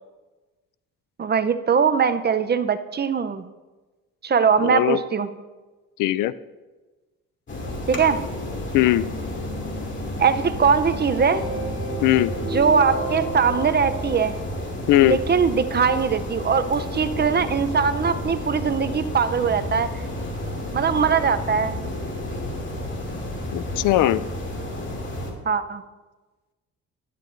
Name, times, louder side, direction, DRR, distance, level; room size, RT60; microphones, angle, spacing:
voice 1, 1.2-3.5 4.2-5.3 7.9-8.2 10.2-11.4 12.4-14.4 15.0-19.9 20.7-21.8 25.5-25.8, right 6 dB, 35° right, 11 dB, 0.7 m, -21 dB
voice 2, 4.6-5.0 6.0-6.3 8.7-9.1 12.0-12.3 14.9-15.2 23.5-24.2, left 15 dB, 90° left, 17 dB, 0.5 m, -19 dB
sound 1, 7.5-25.3, left 1 dB, 40° left, 2.6 m, -31 dB
sound 2, 10.9-15.2, equal, 65° left, 3.8 m, -33 dB
15.5 x 11.0 x 2.6 m, 1.2 s
cardioid pair, 90°, 30 cm